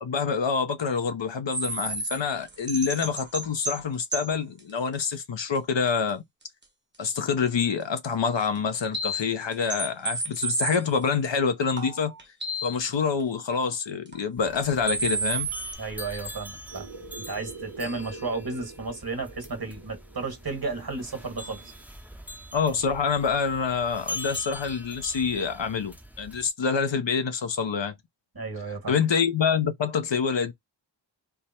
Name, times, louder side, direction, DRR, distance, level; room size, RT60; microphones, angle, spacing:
voice 1, 0.0-6.2 7.0-12.1 12.6-15.5 22.5-28.0 28.9-30.5, left 6 dB, 75° left, 0.8 m, -26 dB
sound 1, 1.5-3.8 4.1-4.4 4.9-5.0 5.4-5.5 5.9-6.0 8.4-8.5 8.8-11.1 11.8-12.9 13.2-13.3 14.1-14.2 14.6-14.7 14.9-15.8, right 3 dB, 25° right, 1.0 m, -31 dB
sound 2, 14.4-26.5, left 1 dB, 5° right, 0.6 m, -43 dB
voice 2, 15.8-16.9 17.3-21.6 28.3-28.9, right 3 dB, 50° right, 1.6 m, -33 dB
sound 3, 16.7-21.8, right 3 dB, 85° right, 1.0 m, -45 dB
3.4 x 2.1 x 4.3 m
wide cardioid pair, 40°, 45 cm